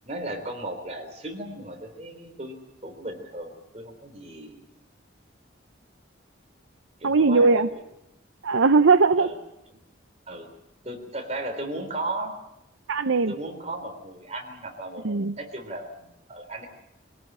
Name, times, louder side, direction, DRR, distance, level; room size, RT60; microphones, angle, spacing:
voice 1, 0.1-4.6 7.0-7.8 9.2-9.4 10.3-10.5 10.8-12.3 13.3-16.7, right 1 dB, 35° right, 3 dB, 3.6 m, -36 dB
voice 2, 7.0-7.7 8.4-9.3 12.9-13.3 15.0-15.4, right 4 dB, 85° right, 10 dB, 0.8 m, -19 dB
22.5 x 17.5 x 8.9 m, 0.86 s
head